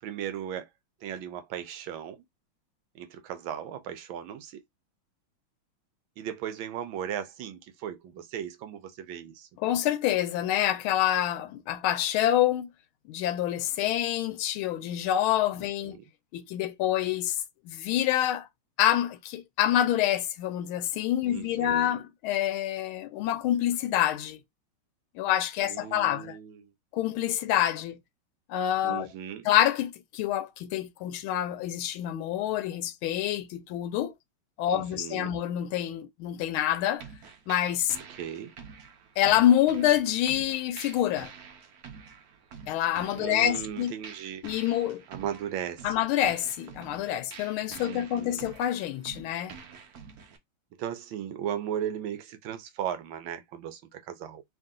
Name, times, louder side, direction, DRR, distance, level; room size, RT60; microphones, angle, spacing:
voice 1, 0.0-0.7 1.0-2.2 2.9-4.6 6.2-9.5 15.8-16.0 21.2-22.0 25.6-26.7 28.8-29.5 34.7-35.4 38.2-38.5 43.2-44.4 45.1-46.0 47.8-48.5 50.8-54.4, right 9 dB, 80° right, 1.4 m, -37 dB
voice 2, 9.6-12.7 13.1-16.0 16.3-17.4 17.7-18.5 18.8-24.4 25.1-26.4 26.9-28.0 28.5-29.1 29.4-34.1 34.6-37.1 37.5-38.0 39.2-41.3 42.7-43.9 44.4-45.0 45.8-49.5, left 12 dB, 90° left, 1.4 m, -27 dB
sound 1, 37.0-50.4, right 6 dB, 60° right, 1.1 m, -48 dB
3.7 x 2.6 x 3.7 m
omnidirectional pair, 2.2 m